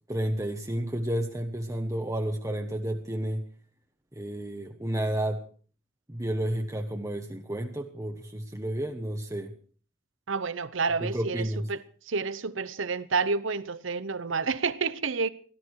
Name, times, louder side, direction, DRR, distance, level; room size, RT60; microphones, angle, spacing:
voice 1, 0.1-3.4 4.1-5.4 6.1-9.5 11.0-11.7, right 1 dB, 15° right, 1.1 m, -31 dB
voice 2, 10.3-15.3, right 4 dB, 75° right, 0.9 m, -29 dB
17.5 x 13.0 x 4.7 m
head